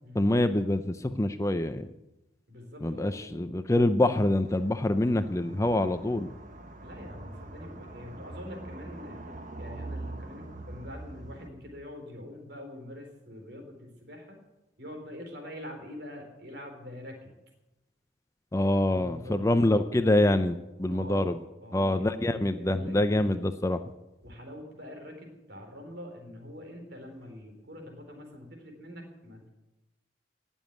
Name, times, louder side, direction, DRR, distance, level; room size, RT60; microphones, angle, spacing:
voice 1, 0.1-1.9 2.8-6.3 18.5-21.4 21.7-23.8, left 1 dB, 15° left, 10 dB, 0.5 m, -25 dB
voice 2, 2.5-3.6 6.8-9.2 9.6-14.4 14.8-17.3 18.9-19.6 20.9-23.4 24.2-29.5, left 1 dB, 60° right, 4 dB, 3.9 m, -44 dB
sound 1, 4.4-11.5, right 2 dB, 40° right, 1.4 m, -43 dB
18.5 x 7.2 x 9.5 m, 0.98 s
head